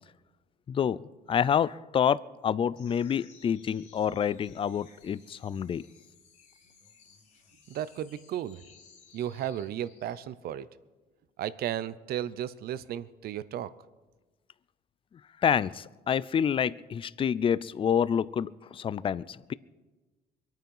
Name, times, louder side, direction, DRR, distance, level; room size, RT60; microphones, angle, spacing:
voice 1, 0.7-1.0 1.3-5.8 15.4-19.5, left 8 dB, 30° left, 19 dB, 0.4 m, -28 dB
sound 1, 2.7-10.3, left 6 dB, 45° left, 2.8 m, -59 dB
voice 2, 7.7-8.6 9.1-10.7 11.4-13.7, right 11 dB, 65° right, 16 dB, 0.7 m, -34 dB
23.5 x 9.1 x 5.6 m, 1.2 s
cardioid pair, 110°, 17 cm